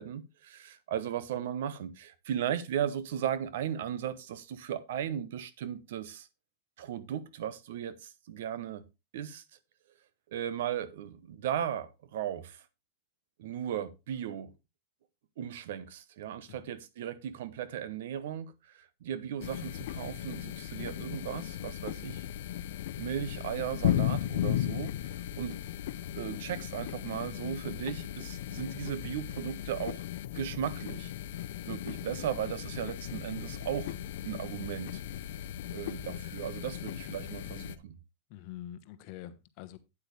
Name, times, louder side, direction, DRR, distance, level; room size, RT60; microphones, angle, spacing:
voice 1, 0.0-6.3 6.8-8.8 9.1-9.4 10.3-12.6 13.4-14.5 15.4-22.3 23.0-25.6 26.1-30.0 30.3-31.1 31.7-33.9 34.2-35.0 35.7-38.0, right 9 dB, 70° right, 0.9 m, -36 dB
sound 1, 19.4-37.8, left 12 dB, 70° left, 0.5 m, -36 dB
voice 2, 38.3-39.8, left 12 dB, 45° left, 1.1 m, -46 dB
8.8 x 8.2 x 3.3 m
supercardioid pair, 160°, 0 cm